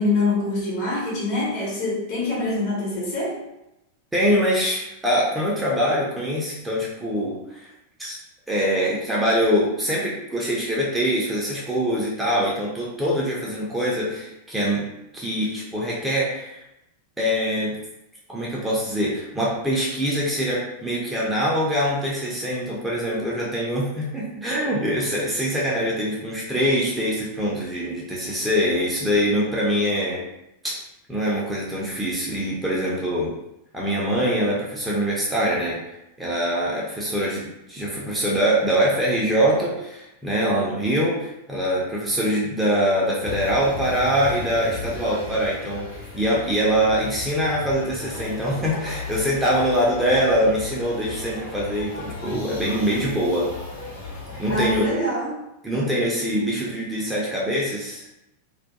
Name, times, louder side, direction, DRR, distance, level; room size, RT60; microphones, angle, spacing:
voice 1, 0.0-3.4 54.5-55.4 56.3-56.5, left 2 dB, 45° left, -5 dB, 1.0 m, -25 dB
voice 2, 4.1-7.7 8.0-8.2 8.5-14.8 15.1-16.6 17.2-17.8 18.3-30.2 30.6-30.7 31.1-33.3 33.7-35.8 36.2-45.8 46.1-53.5 54.4-54.9 55.6-58.1, equal, 10° right, -5 dB, 0.5 m, -23 dB
sound 1, 43.2-54.8, left 3 dB, 65° left, 0.8 m, -36 dB
2.2 x 2.2 x 2.8 m, 0.88 s
figure-of-eight pair, 90°, 0 cm